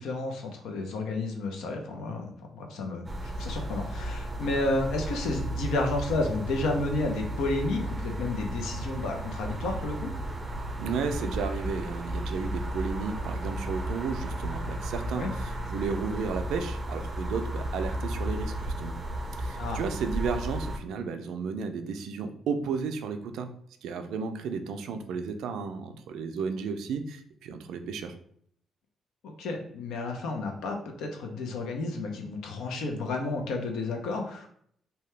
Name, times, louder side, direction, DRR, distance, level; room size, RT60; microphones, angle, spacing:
voice 1, 0.0-10.1 15.1-15.3 19.6-19.8 29.2-34.5, left 2 dB, 85° left, 3 dB, 0.6 m, -31 dB
sound 1, 3.1-20.8, right 1 dB, 25° right, 0.5 m, -34 dB
voice 2, 10.8-19.0 19.4-23.5 23.8-28.1, right 5 dB, 80° right, 7 dB, 0.3 m, -33 dB
2.7 x 2.2 x 3.2 m, 0.64 s
cardioid pair, 90°, 0 cm